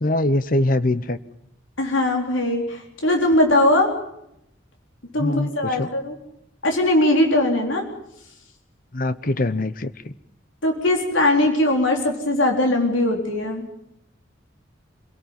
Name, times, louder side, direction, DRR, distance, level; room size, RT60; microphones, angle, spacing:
voice 1, 0.0-1.2 5.2-5.9 8.9-10.1, left 1 dB, 45° left, 14 dB, 0.9 m, -23 dB
voice 2, 1.8-3.9 5.1-6.2 6.6-7.9 10.6-13.6, left 1 dB, 80° left, 2 dB, 4.0 m, -20 dB
26.0 x 18.0 x 5.9 m, 0.79 s
head